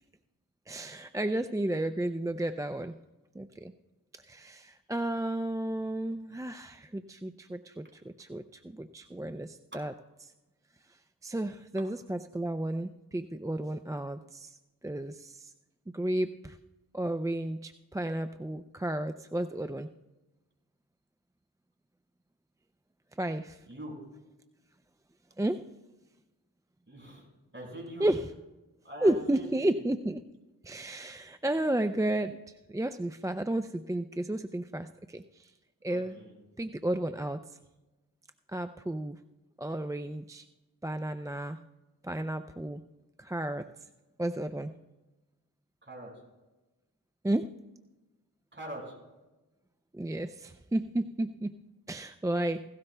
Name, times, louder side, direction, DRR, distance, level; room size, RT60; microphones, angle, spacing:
voice 1, 0.7-2.9 3.3-3.7 4.2-9.9 10.2-10.3 10.9-14.6 14.8-15.5 15.9-16.6 16.9-19.9 23.2-23.6 25.4-25.6 28.0-28.3 29.0-30.2 30.6-35.5 35.8-36.2 36.6-37.4 38.5-39.2 39.6-40.5 40.8-41.6 42.0-42.8 43.2-43.7 44.2-44.7 47.2-47.5 49.9-51.6 51.9-52.6, right 1 dB, 10° right, 9 dB, 0.4 m, -32 dB
voice 2, 23.7-24.0 26.9-27.3 27.5-28.1 28.9-29.8 35.9-36.3 45.8-46.1 48.5-49.0, equal, 30° right, -1 dB, 5.2 m, -43 dB
17.0 x 17.0 x 2.2 m, 1.1 s
cardioid pair, 50°, 37 cm